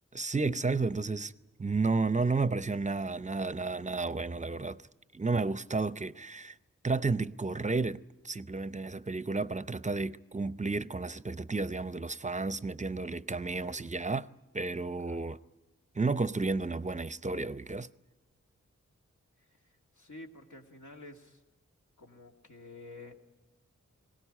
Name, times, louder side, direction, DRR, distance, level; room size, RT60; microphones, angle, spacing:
voice 1, 0.1-1.3 1.6-4.8 5.1-6.6 6.8-8.0 8.2-14.3 14.5-15.4 15.9-17.9, right 3 dB, 25° right, 0.6 m, -32 dB
voice 2, 19.5-21.4 22.0-23.1, left 2 dB, 75° left, 2.4 m, -50 dB
20.0 x 17.0 x 9.9 m
cardioid pair, 45°, 30 cm